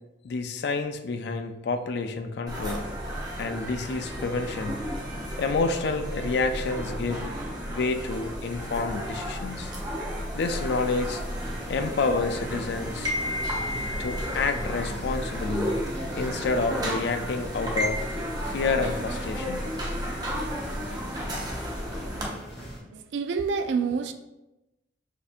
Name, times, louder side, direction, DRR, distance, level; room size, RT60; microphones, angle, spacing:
voice 1, 0.2-2.8 3.4-4.8 5.4-7.2 7.7-9.7 10.3-11.2 11.7-13.1 14.0-15.7 16.2-18.1 18.4-19.6, left 4 dB, 65° left, 8 dB, 0.4 m, -29 dB
sound 1, 2.5-22.3, equal, 20° right, 0.7 m, -32 dB
sound 2, 11.1-22.8, equal, ahead, 1.5 m, -41 dB
voice 2, 22.9-24.1, right 5 dB, 75° right, 8 dB, 0.3 m, -27 dB
6.3 x 2.7 x 2.4 m, 0.98 s
head